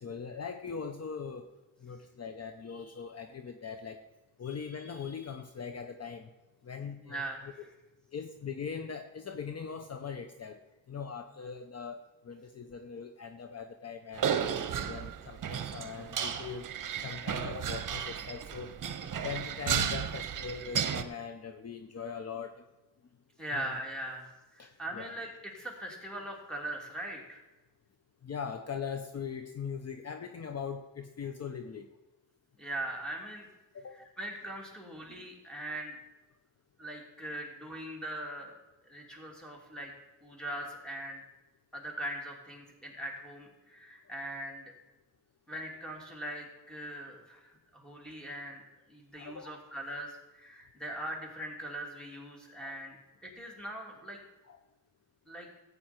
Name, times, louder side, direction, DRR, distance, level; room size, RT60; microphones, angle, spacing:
voice 1, 0.0-1.5 1.8-4.0 4.4-6.3 6.6-7.2 8.1-10.6 10.9-14.4 14.8-16.7 17.0-18.7 19.2-22.6 23.5-23.7 24.6-25.1 28.2-31.9 33.7-34.0 35.2-35.3 39.1-39.2 49.1-49.6 52.6-52.8 54.5-54.6, left 6 dB, 45° left, 8 dB, 0.8 m, -41 dB
voice 2, 7.0-7.5 23.4-27.4 32.6-33.5 33.9-36.0 36.8-38.6 38.9-39.9 40.2-41.2 41.7-44.7 45.5-48.6 48.9-53.0 53.2-54.2 55.3-55.5, right 1 dB, ahead, -1 dB, 3.0 m, -41 dB
sound 1, 14.2-21.0, right 8 dB, 60° right, 0.9 m, -34 dB
14.0 x 8.5 x 4.5 m, 1.0 s
cardioid pair, 95°, 36 cm